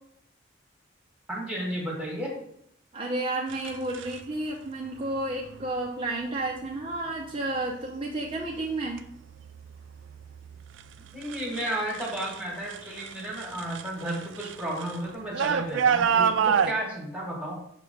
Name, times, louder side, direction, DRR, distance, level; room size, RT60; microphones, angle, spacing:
voice 1, 1.3-2.3 11.1-17.6, right 1 dB, 5° right, -3 dB, 1.4 m, -33 dB
voice 2, 2.9-9.1, right 2 dB, 30° right, -3 dB, 0.6 m, -31 dB
sound 1, 3.5-4.2 5.3-5.7 6.2-6.7 7.2-7.8 8.1-12.4 12.7-16.7, right 7 dB, 75° right, 0.3 m, -29 dB
5.8 x 3.2 x 5.0 m, 0.73 s
head